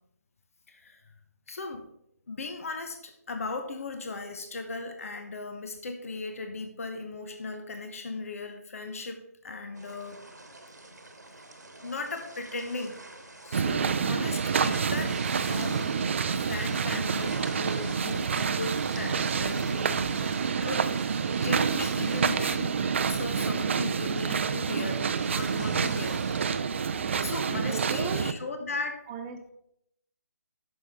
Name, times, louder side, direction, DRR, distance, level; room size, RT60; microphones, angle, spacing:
voice 1, 0.7-1.0 1.5-1.8 2.3-10.2 11.8-12.9 13.4-16.0 16.3-20.3 20.6-26.2 26.8-29.0, left 3 dB, 55° left, 6 dB, 1.2 m, -37 dB
sound 1, 9.7-26.6, right 2 dB, 85° right, 1.4 m, -45 dB
sound 2, 13.5-28.3, right 6 dB, 45° right, 0.5 m, -28 dB
voice 2, 27.0-27.3 27.7-28.3 29.1-29.5, right 6 dB, 15° right, 4 dB, 0.8 m, -38 dB
9.2 x 6.5 x 3.7 m, 0.75 s
figure-of-eight pair, 150°, 9 cm